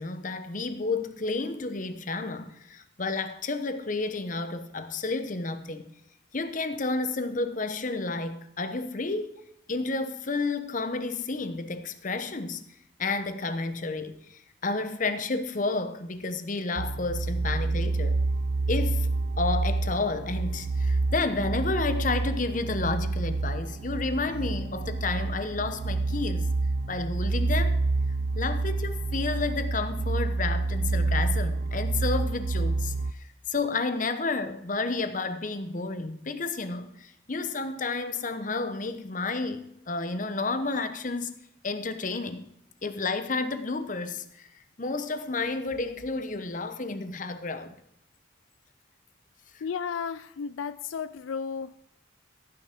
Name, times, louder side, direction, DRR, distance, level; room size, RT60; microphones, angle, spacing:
voice 1, 0.0-5.9 6.3-9.3 9.7-12.6 13.0-18.2 18.7-19.1 19.4-26.5 26.9-27.8 28.3-41.3 41.6-42.5 42.8-44.5 44.8-47.8, left 3 dB, 40° left, 0.9 m, -31 dB
sound 1, 16.8-33.1, right 3 dB, 50° right, 0.5 m, -28 dB
voice 2, 49.6-51.9, left 6 dB, 80° left, 0.4 m, -34 dB
15.0 x 9.3 x 4.5 m
head